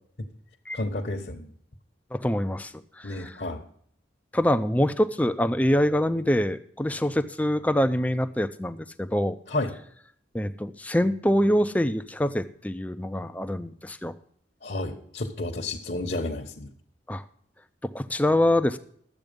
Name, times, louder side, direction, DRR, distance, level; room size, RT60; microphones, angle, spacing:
voice 1, 0.7-1.5 3.0-3.6 9.5-9.7 14.6-16.7, left 2 dB, 50° left, 0 dB, 1.1 m, -31 dB
voice 2, 2.1-3.4 4.3-9.4 10.3-14.1 17.1-17.2 17.9-18.8, left 1 dB, 10° left, 10 dB, 0.5 m, -25 dB
12.0 x 8.2 x 5.2 m, 0.64 s
head